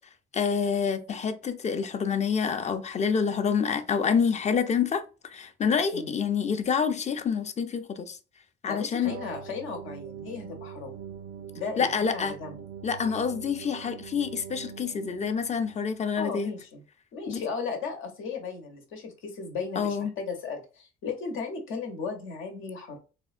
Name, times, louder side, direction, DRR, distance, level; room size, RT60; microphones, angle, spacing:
voice 1, 0.3-8.2 8.6-9.2 11.8-12.3 12.8-16.5 17.3-17.4 19.8-20.1, left 6 dB, 35° left, 0.4 m, -27 dB
voice 2, 8.6-11.0 11.5-12.5 16.2-16.8 17.1-23.0, left 5 dB, 85° left, 0.9 m, -36 dB
sound 1, 9.0-16.1, right 8 dB, 75° right, 0.4 m, -43 dB
3.4 x 2.1 x 2.4 m
cardioid pair, 90°, 20 cm